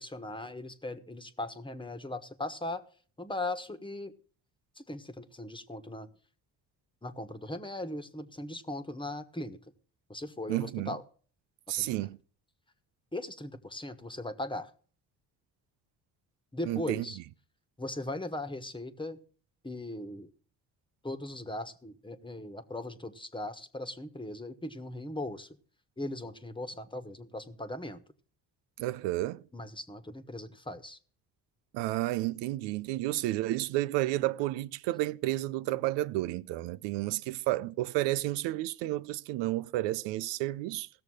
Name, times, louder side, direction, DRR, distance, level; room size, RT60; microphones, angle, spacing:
voice 1, 0.0-2.8 3.2-4.1 4.8-6.1 7.0-9.6 10.1-11.0 11.8-12.1 13.1-14.7 16.5-17.2 17.8-19.2 19.6-20.3 21.0-25.5 26.0-28.0 29.5-31.0, left 1 dB, 10° left, 1.3 m, -39 dB
voice 2, 10.5-10.9 11.7-12.2 16.6-17.1 28.8-29.4 31.7-40.9, right 17 dB, 85° right, 0.6 m, -31 dB
16.5 x 6.8 x 6.3 m
supercardioid pair, 75°, 42 cm